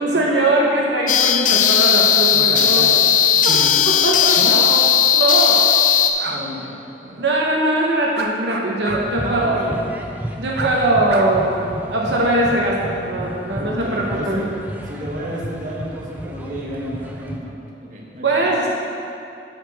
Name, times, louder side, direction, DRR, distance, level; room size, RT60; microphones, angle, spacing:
voice 1, 0.0-2.9 3.4-3.6 3.9-4.9 5.1-5.7 7.2-9.7 10.4-14.5 18.2-18.7, right 1 dB, 80° right, -3 dB, 1.0 m, -21 dB
sound 1, 1.1-6.1, left 8 dB, 45° left, 0.5 m, -16 dB
voice 2, 2.3-3.1 3.3-3.8 4.3-4.6 6.2-6.8 7.0-7.2 9.2-9.9 13.6-14.5 14.9-18.5, equal, 45° right, -4 dB, 1.3 m, -31 dB
sound 2, 6.1-6.4 8.1-9.0 9.3-9.4 10.5-10.7 11.1-11.7, right 3 dB, 65° right, 0.7 m, -29 dB
sound 3, 8.9-17.4, equal, 10° right, 0.5 m, -32 dB
13.0 x 4.7 x 4.1 m, 2.6 s
head